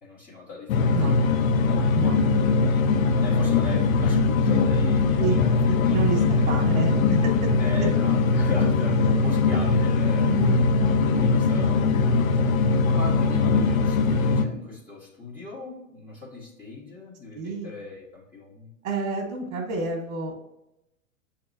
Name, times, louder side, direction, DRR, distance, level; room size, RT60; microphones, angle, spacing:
voice 1, 0.0-2.2 2.6-5.6 5.9-6.4 7.6-10.3 11.2-18.7, left 3 dB, 20° left, -7 dB, 1.2 m, -39 dB
sound 1, 0.7-14.5, left 4 dB, 75° left, 0.6 m, -21 dB
voice 2, 5.7-7.5 7.8-7.9 10.2-10.6 17.3-17.7 18.8-20.3, right 4 dB, 55° right, 1 dB, 1.1 m, -29 dB
7.0 x 2.9 x 2.6 m, 0.88 s
hypercardioid pair, 100°, 41 cm